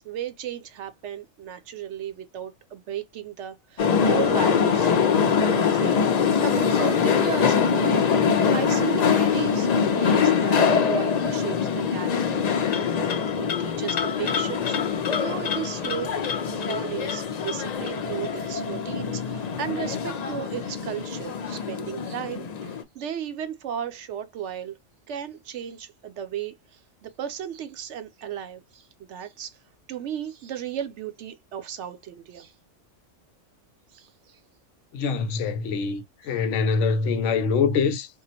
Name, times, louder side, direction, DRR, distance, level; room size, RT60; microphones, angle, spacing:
voice 1, 0.0-5.0 5.3-8.0 8.5-11.6 11.9-12.4 13.4-16.2 16.5-24.7 25.1-26.5 27.0-28.8 29.1-29.6 29.9-32.5 33.9-34.1 36.2-36.4, right 9 dB, 70° right, 0.9 m, -35 dB
sound 1, 3.8-22.8, left 6 dB, 55° left, 0.4 m, -23 dB
voice 2, 34.9-38.1, left 5 dB, 75° left, 0.9 m, -24 dB
3.6 x 2.1 x 2.7 m
omnidirectional pair, 1.3 m